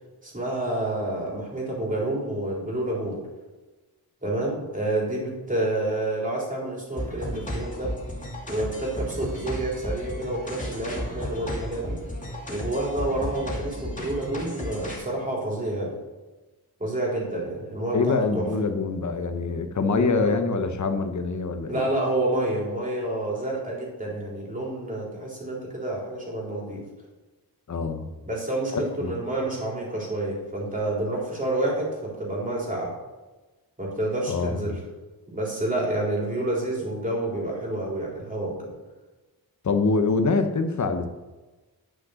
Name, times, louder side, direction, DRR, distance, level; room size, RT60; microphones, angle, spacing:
voice 1, 0.2-3.2 4.2-7.9 8.5-12.0 12.5-15.9 16.8-18.5 20.0-20.3 21.7-26.8 28.2-32.9 33.8-34.8 35.3-38.7, right 1 dB, 20° right, -3 dB, 3.7 m, -29 dB
sound 1, 7.0-15.0, left 1 dB, 20° left, 2.6 m, -34 dB
voice 2, 17.9-21.8 27.7-28.1 28.7-29.2 34.3-34.7 39.6-41.1, left 4 dB, 50° left, 7 dB, 1.1 m, -25 dB
11.0 x 6.4 x 6.4 m, 1.2 s
wide cardioid pair, 155°, 37 cm